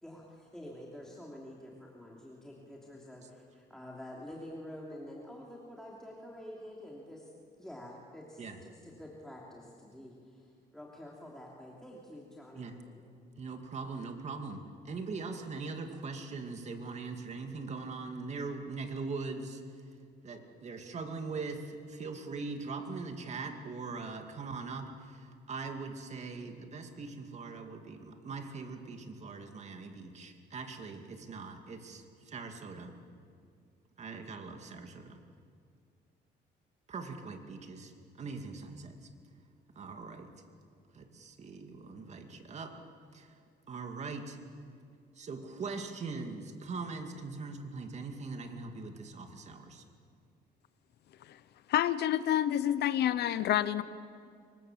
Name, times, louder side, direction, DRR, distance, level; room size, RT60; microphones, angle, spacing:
voice 1, 0.0-7.3 7.6-10.5 10.7-13.0, left 1 dB, 5° left, -3 dB, 3.0 m, -48 dB
voice 2, 13.4-19.6 20.2-32.9 34.0-35.2 36.9-39.1 39.8-40.3 40.9-42.7 43.1-43.4 43.7-44.4 45.2-49.9, right 4 dB, 40° right, 5 dB, 2.4 m, -41 dB
voice 3, 51.7-53.8, left 11 dB, 70° left, 15 dB, 0.9 m, -28 dB
26.5 x 24.0 x 7.5 m, 2.2 s
cardioid pair, 140°, 18 cm